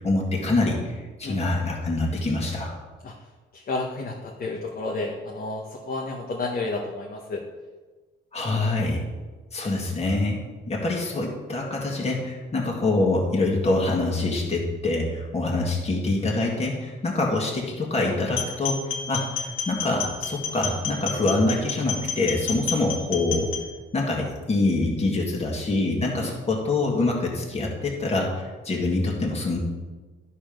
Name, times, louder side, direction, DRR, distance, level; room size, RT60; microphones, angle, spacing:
voice 1, 0.0-2.7 8.3-9.0 9.5-10.4 10.7-23.5 23.9-29.6, left 2 dB, 30° left, -2 dB, 1.8 m, -25 dB
voice 2, 3.5-7.4 26.2-26.3, left 3 dB, 50° left, -1 dB, 1.2 m, -31 dB
sound 1, 18.3-23.6, left 6 dB, 85° left, 1.6 m, -31 dB
12.0 x 4.3 x 5.1 m, 1.3 s
cardioid pair, 90°, 20 cm